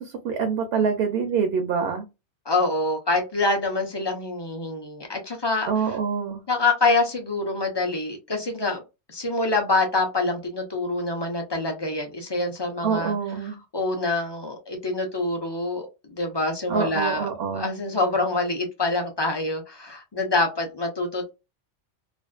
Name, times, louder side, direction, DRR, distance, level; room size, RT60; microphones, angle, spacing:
voice 1, 0.0-2.0 5.7-6.4 12.8-13.6 16.7-17.7, right 6 dB, 65° right, 0.7 m, -25 dB
voice 2, 2.5-5.7 6.5-8.8 9.1-13.1 13.7-17.3 17.5-21.3, left 2 dB, 35° left, 0.4 m, -25 dB
2.5 x 2.4 x 2.3 m
omnidirectional pair, 1.2 m